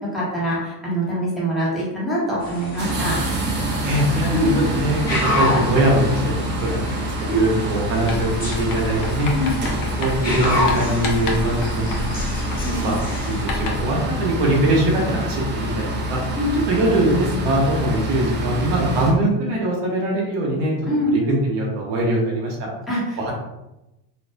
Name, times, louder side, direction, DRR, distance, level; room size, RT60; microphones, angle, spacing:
voice 1, 0.1-3.2 4.3-4.6 7.3-7.6 9.3-9.5 12.6-12.8 16.3-16.6 20.8-21.2 22.9-23.2, equal, ahead, -8 dB, 1.1 m, -24 dB
sound 1, 2.4-13.4, left 1 dB, 15° left, 1.4 m, -29 dB
sound 2, 2.8-19.1, right 1 dB, 25° right, 0.5 m, -26 dB
voice 2, 3.8-4.4 4.7-6.2 6.6-9.3 10.0-12.1 12.6-16.2 16.7-20.7 21.3-22.6 23.2-23.3, right 1 dB, 55° right, -2 dB, 0.9 m, -22 dB
Writing, 8.1-14.0, left 2 dB, 55° left, 0.7 m, -30 dB
2.5 x 2.3 x 2.2 m, 0.95 s
supercardioid pair, 90°, 50 cm